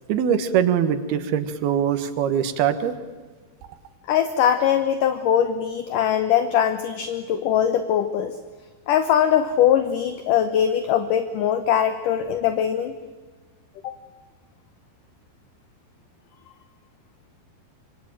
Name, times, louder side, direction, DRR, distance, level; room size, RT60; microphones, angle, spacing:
voice 1, 0.1-2.9, right 9 dB, 75° right, 11 dB, 3.2 m, -22 dB
voice 2, 4.1-8.4 8.9-12.9 13.8-14.0, left 9 dB, 70° left, 10 dB, 2.2 m, -21 dB
26.0 x 24.0 x 9.0 m, 1.4 s
omnidirectional pair, 4.6 m